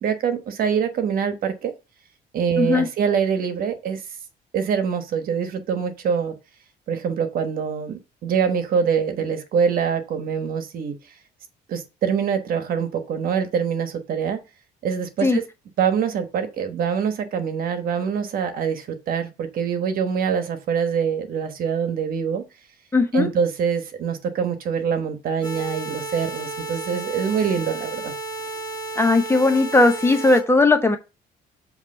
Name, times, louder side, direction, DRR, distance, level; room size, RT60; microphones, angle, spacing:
voice 1, 0.0-1.7 2.3-4.0 4.5-6.3 6.9-10.9 11.7-14.4 14.8-15.4 15.8-22.4 23.1-28.1, right 7 dB, 60° right, 1.2 m, -24 dB
voice 2, 22.9-23.3 29.0-31.0, left 2 dB, 15° left, 0.9 m, -17 dB
sound 1, 25.4-30.4, right 2 dB, 10° right, 4.2 m, -33 dB
7.2 x 3.1 x 5.5 m
cardioid pair, 110°, 17 cm